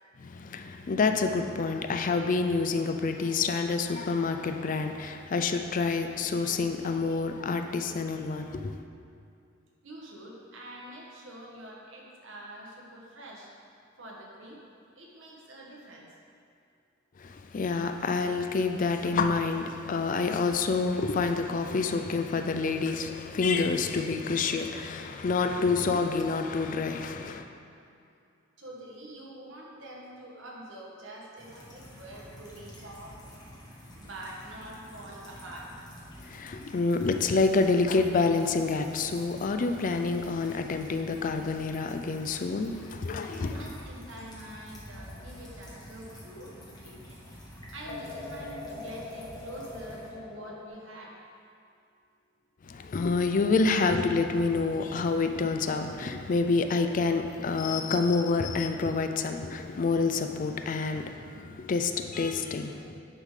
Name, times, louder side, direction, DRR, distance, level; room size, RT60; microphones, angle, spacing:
voice 1, 0.2-8.8 17.2-27.5 36.2-43.7 52.6-63.0, left 4 dB, 45° left, 7 dB, 0.4 m, -28 dB
voice 2, 9.8-13.5 14.0-14.6 15.0-16.1 28.6-33.2 34.0-35.8 43.5-47.2 47.7-51.1, right 1 dB, 75° right, -3 dB, 1.4 m, -45 dB
sound 1, 31.4-50.1, equal, 20° left, 1.1 m, -48 dB
sound 2, 45.0-46.8 47.9-50.7, left 2 dB, 85° left, 1.6 m, -43 dB
9.8 x 3.7 x 4.9 m, 2.4 s
head